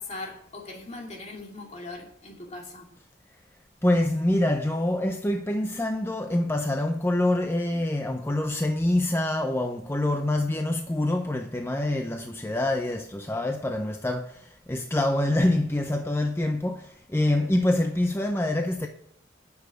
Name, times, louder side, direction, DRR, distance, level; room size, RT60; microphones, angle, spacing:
voice 1, 0.0-2.9, left 2 dB, 40° left, 2.4 m, -40 dB
voice 2, 3.8-18.9, left 1 dB, 15° left, 0.6 m, -26 dB
10.0 x 7.2 x 8.1 m
head